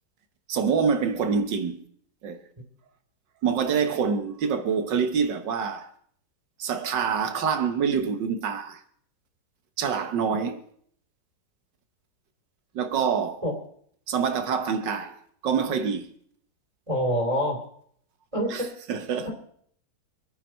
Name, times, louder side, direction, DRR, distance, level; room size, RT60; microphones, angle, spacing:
voice 1, 0.5-1.8 2.2-2.4 3.4-5.9 6.6-8.8 9.8-10.6 12.8-13.4 14.1-15.2 15.4-16.1 18.5-18.6 18.9-19.3, right 6 dB, 85° right, 1.9 m, -26 dB
voice 2, 16.9-17.6 18.3-18.7 19.2-19.3, equal, 15° right, 3.0 m, -25 dB
25.0 x 9.3 x 4.4 m
omnidirectional pair, 1.9 m